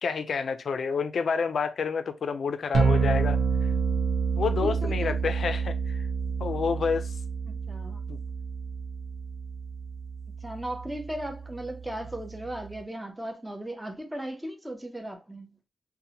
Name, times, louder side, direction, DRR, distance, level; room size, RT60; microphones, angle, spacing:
voice 1, 0.0-3.4 4.4-6.1 6.4-7.2 8.1-8.2, left 5 dB, 70° left, 0.3 m, -29 dB
sound 1, 2.7-12.8, right 5 dB, 85° right, 0.5 m, -29 dB
voice 2, 4.6-5.1 7.5-8.1 10.4-15.5, right 1 dB, 10° right, 0.5 m, -37 dB
2.6 x 2.0 x 2.8 m
wide cardioid pair, 115°, 0 cm